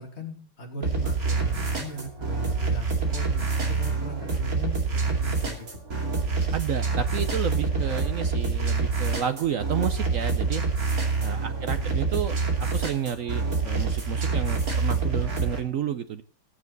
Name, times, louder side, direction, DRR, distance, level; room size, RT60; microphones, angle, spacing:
voice 1, 0.0-5.8 11.5-11.9, equal, 30° left, 3 dB, 2.8 m, -39 dB
sound 1, 0.8-15.6, right 4 dB, 45° right, 3.1 m, -26 dB
voice 2, 6.5-10.6 11.2-16.2, right 8 dB, 70° right, 10 dB, 0.7 m, -31 dB
20.0 x 7.3 x 4.0 m, 0.41 s
omnidirectional pair, 2.2 m